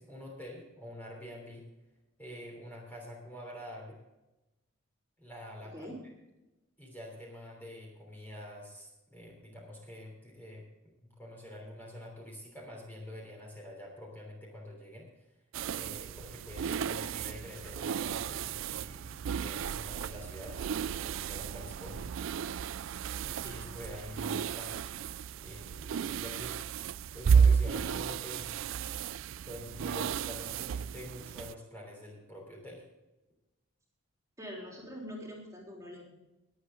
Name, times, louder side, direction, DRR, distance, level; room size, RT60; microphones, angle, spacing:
voice 1, 0.0-1.6 2.2-4.0 5.2-5.9 6.8-10.6 11.2-15.1 15.7-22.4 22.8-26.6 26.9-28.5 29.4-32.8, equal, 10° left, -2 dB, 3.3 m, -46 dB
voice 2, 5.6-6.0 16.6-17.0 23.3-23.6 34.4-36.1, equal, 15° right, -2 dB, 3.6 m, -44 dB
sound 1, 15.5-31.5, right 6 dB, 65° right, 0.3 m, -33 dB
22.0 x 8.3 x 3.8 m, 1.0 s
head